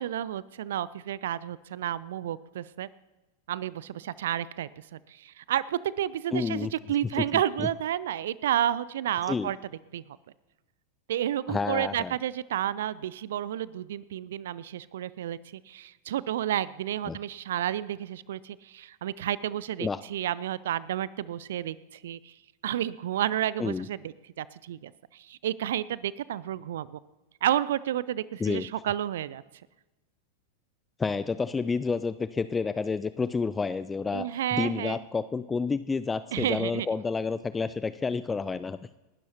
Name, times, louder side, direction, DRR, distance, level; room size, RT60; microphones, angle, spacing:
voice 1, 0.0-2.9 3.5-9.6 9.9-10.0 11.1-22.3 22.6-27.0 27.4-29.4 34.1-35.0 36.3-36.9, right 11 dB, 60° right, 19 dB, 0.4 m, -31 dB
voice 2, 6.3-6.7 7.2-7.3 9.3-9.5 11.5-12.1 17.1-17.2 19.8-20.0 23.6-23.9 28.4-28.7 31.0-38.8, left 4 dB, 15° left, 14 dB, 0.4 m, -29 dB
29.5 x 12.0 x 2.9 m, 1.1 s
figure-of-eight pair, 90°, 0 cm